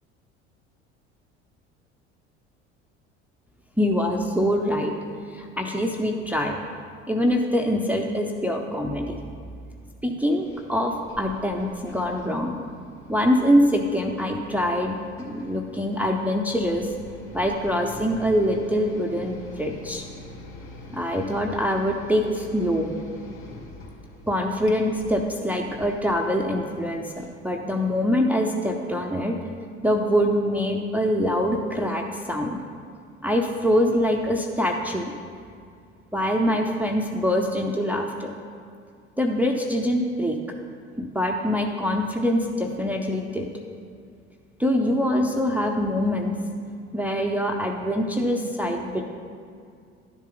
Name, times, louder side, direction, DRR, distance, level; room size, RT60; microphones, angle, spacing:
voice 1, 3.8-4.9 5.3-6.6 7.1-9.1 10.0-12.6 13.1-16.9 17.3-20.0 20.9-22.9 24.3-29.4 29.8-32.6 33.2-35.1 36.1-38.3 39.2-40.4 41.0-43.5 44.6-46.4 46.9-49.0, equal, 5° right, 2 dB, 0.7 m, -24 dB
sound 1, 10.2-27.3, left 2 dB, 40° left, 2.4 m, -45 dB
11.5 x 7.3 x 3.9 m, 2.3 s
hypercardioid pair, 65°, 34 cm